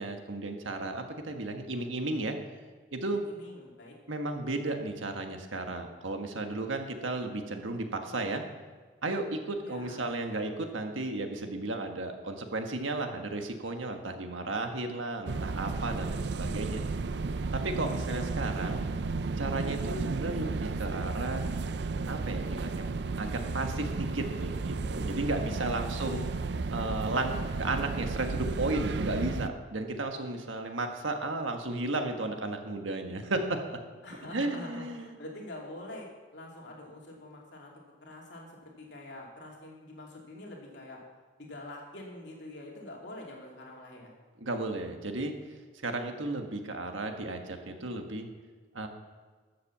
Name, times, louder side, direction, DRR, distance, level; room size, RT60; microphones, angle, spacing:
voice 1, 0.0-2.4 2.9-3.2 4.1-8.4 9.0-16.8 17.5-18.9 19.4-21.4 22.1-22.9 23.2-26.2 26.7-33.8 34.2-35.1 44.4-45.3 45.8-48.3 48.7-48.9, right 2 dB, 90° right, 5 dB, 1.5 m, -34 dB
voice 2, 3.0-4.0 9.6-10.2 25.6-26.2 34.0-37.7 38.0-41.0 41.4-44.1, left 1 dB, 65° left, -1 dB, 2.7 m, -46 dB
sound 1, 15.3-29.5, right 3 dB, 60° right, 0.5 m, -33 dB
13.0 x 7.7 x 7.3 m, 1.5 s
head